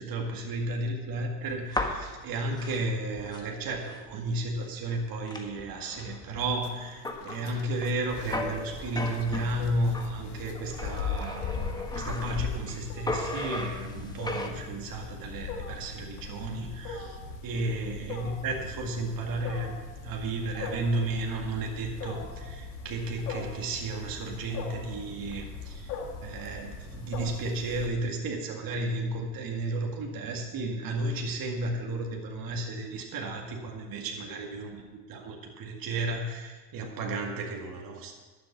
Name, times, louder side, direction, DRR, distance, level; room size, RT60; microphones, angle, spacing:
voice 1, 0.0-17.2 17.4-19.7 20.0-25.9 26.2-34.7 35.1-38.1, right 2 dB, 45° right, 1 dB, 2.1 m, -33 dB
sound 1, 1.5-4.1 4.6-4.7 4.9-10.1 10.7-12.8 13.1-14.5, left 2 dB, 10° left, 1.4 m, -36 dB
sound 2, 6.4-12.6, left 8 dB, 60° left, 1.6 m, -38 dB
Wild animals, 8.1-27.9, left 4 dB, 80° left, 2.1 m, -41 dB
11.5 x 7.2 x 7.1 m, 1.4 s
hypercardioid pair, 90°, 49 cm